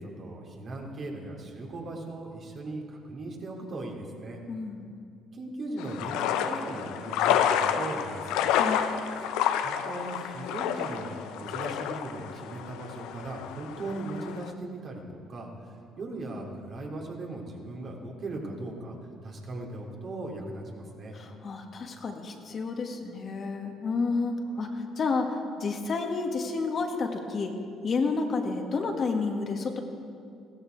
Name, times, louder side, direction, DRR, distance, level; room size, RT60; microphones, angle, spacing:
voice 1, 0.0-4.4 5.3-8.4 9.3-11.1 11.4-15.0 15.3-19.0 19.2-21.2 24.4-24.6, right 2 dB, 50° right, -1 dB, 3.1 m, -38 dB
voice 2, 4.5-4.9 8.6-8.8 21.1-27.5 27.8-29.8, left 4 dB, 50° left, 3 dB, 1.7 m, -30 dB
sound 1, 5.8-14.5, left 9 dB, 80° left, 0.7 m, -29 dB
16.0 x 13.5 x 4.7 m, 2.5 s
hypercardioid pair, 55°, 0 cm